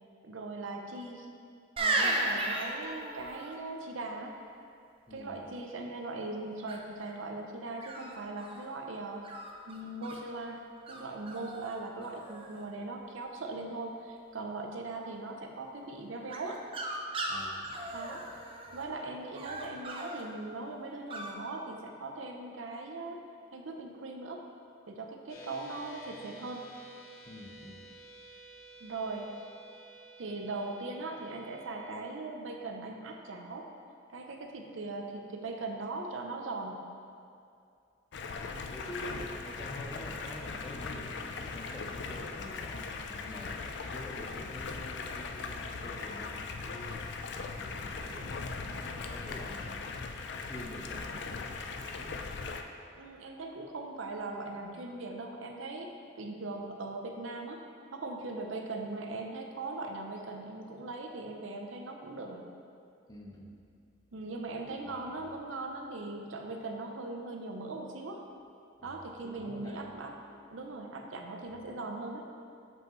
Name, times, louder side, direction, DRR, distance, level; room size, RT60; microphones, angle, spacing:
voice 1, 0.2-1.3 1.8-4.4 5.1-9.3 9.7-16.6 17.9-18.2 18.7-23.2 23.5-24.4 24.9-26.6 28.8-29.3 30.2-33.7 34.1-36.8 53.0-57.6 57.9-62.4 64.1-68.2 68.8-70.1 70.5-72.2, right 2 dB, 85° right, 2 dB, 0.6 m, -40 dB
sound 1, 1.8-3.5 6.7-7.1 7.8-8.7 9.2-10.2 10.9-11.0 11.3-11.8 12.0-12.6 16.3-18.8 19.3-20.2 21.1-21.3, right 2 dB, 30° right, 0.5 m, -35 dB
voice 2, 17.2-18.0 18.3-18.4 18.7-18.8 27.2-27.9 38.7-43.6 43.9-50.0 50.3-52.3 63.1-63.6 64.7-65.0 68.8-69.9, equal, 20° left, -1 dB, 0.6 m, -47 dB
sound 2, 25.3-32.0, right 1 dB, 90° left, 0.8 m, -52 dB
Stream, 38.1-52.6, left 4 dB, 60° left, 0.4 m, -39 dB
7.2 x 5.3 x 3.1 m, 2.5 s
head